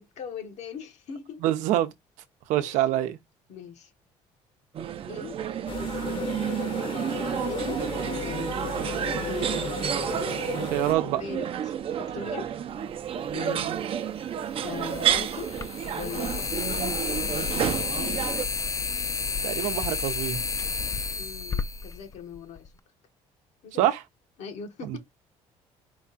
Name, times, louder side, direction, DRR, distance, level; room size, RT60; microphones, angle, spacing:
voice 1, 0.0-1.4 2.6-3.0 3.5-3.9 5.1-5.4 5.8-6.6 7.3-8.5 9.1-10.0 11.0-12.5 13.3-13.7 14.6-15.5 15.9-16.9 17.3-18.2 21.1-22.7 23.6-23.8 24.4-25.0, left 7 dB, 70° left, 1.3 m, -40 dB
voice 2, 1.4-1.9 2.5-3.2 10.6-11.2 19.4-20.4 23.8-24.0 24.8-25.0, right 13 dB, 85° right, 0.7 m, -25 dB
sound 1, 4.7-18.4, right 9 dB, 50° right, 0.6 m, -30 dB
sound 2, 5.7-10.9, left 6 dB, 45° left, 1.0 m, -35 dB
sound 3, 13.3-13.4 14.7-22.7, left 4 dB, 25° left, 0.4 m, -31 dB
4.7 x 2.4 x 4.0 m
cardioid pair, 105°, 12 cm